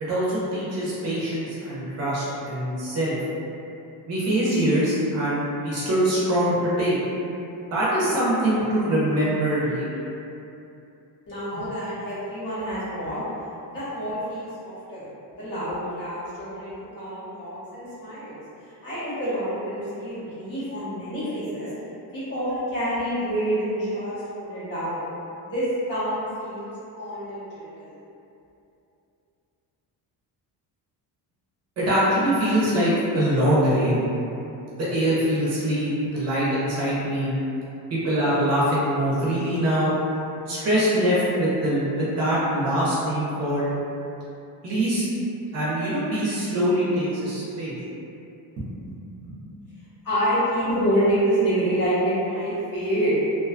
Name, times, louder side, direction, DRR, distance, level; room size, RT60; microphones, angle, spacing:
voice 1, 0.1-3.2 4.1-7.0 7.7-9.9 31.8-34.0 34.7-37.3 37.9-39.9 40.5-43.7 44.6-45.1 45.5-47.7 48.6-48.7 49.2-49.4, right 1 dB, 40° right, -8 dB, 0.5 m, -23 dB
voice 2, 11.3-13.2 13.7-21.7 22.1-25.1 25.4-27.9 50.0-53.2, equal, 55° left, -13 dB, 1.2 m, -27 dB
2.4 x 2.2 x 2.4 m, 2.8 s
cardioid pair, 175°, 40 cm